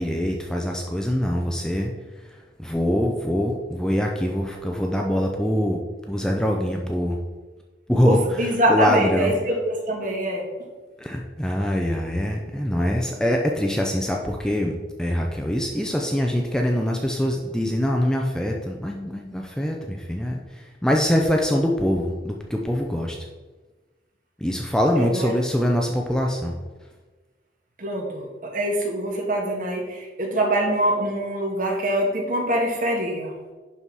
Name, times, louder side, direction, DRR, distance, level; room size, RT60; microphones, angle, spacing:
voice 1, 0.0-1.9 2.6-5.8 6.1-7.2 7.9-9.3 11.0-20.4 20.8-23.2 24.4-26.5, equal, 5° left, 1 dB, 0.6 m, -24 dB
voice 2, 8.0-10.5 25.0-25.3 27.8-33.3, right 1 dB, 45° right, 1 dB, 1.6 m, -24 dB
11.0 x 4.2 x 4.7 m, 1.3 s
head